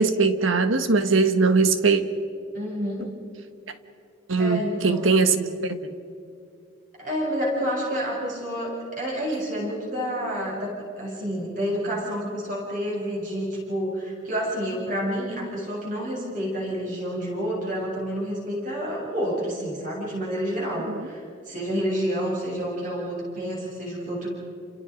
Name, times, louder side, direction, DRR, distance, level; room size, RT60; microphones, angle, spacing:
voice 1, 0.0-2.0 4.3-5.8 20.9-21.1, right 4 dB, 85° right, 9 dB, 1.4 m, -21 dB
voice 2, 2.5-3.1 4.4-5.1 7.0-24.3, equal, 40° right, -3 dB, 7.8 m, -29 dB
29.5 x 28.0 x 5.2 m, 2.4 s
head